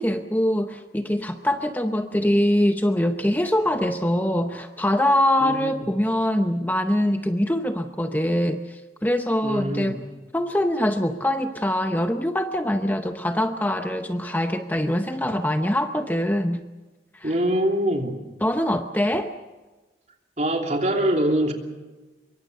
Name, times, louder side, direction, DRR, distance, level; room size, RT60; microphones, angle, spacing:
voice 1, 0.0-10.0 10.3-16.6 17.1-17.3 18.4-19.3, left 1 dB, 10° left, 7 dB, 0.7 m, -23 dB
voice 2, 5.4-5.8 9.4-10.0 17.2-18.2 20.4-21.5, right 1 dB, 40° right, 2 dB, 3.0 m, -23 dB
25.0 x 23.0 x 6.7 m, 1.2 s
head